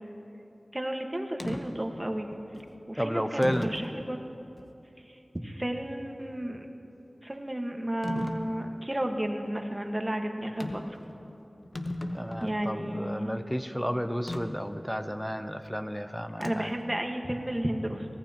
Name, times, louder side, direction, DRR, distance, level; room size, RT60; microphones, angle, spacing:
voice 1, 0.7-2.3 2.9-4.2 5.4-6.7 7.2-10.8 12.4-13.4 16.4-18.0, right 1 dB, 25° right, 3 dB, 1.4 m, -32 dB
sound 1, 1.4-1.6 2.5-2.7 3.4-3.9 4.6-4.7 8.0-8.4 10.6-11.0 11.3-11.4 11.6-12.7 14.3-14.4 16.4-16.8, left 1 dB, 55° left, 1.0 m, -35 dB
voice 2, 3.0-3.8 12.1-16.7, equal, 5° left, 9 dB, 0.6 m, -32 dB
24.0 x 17.5 x 2.9 m, 3.0 s
wide cardioid pair, 50°, 0 cm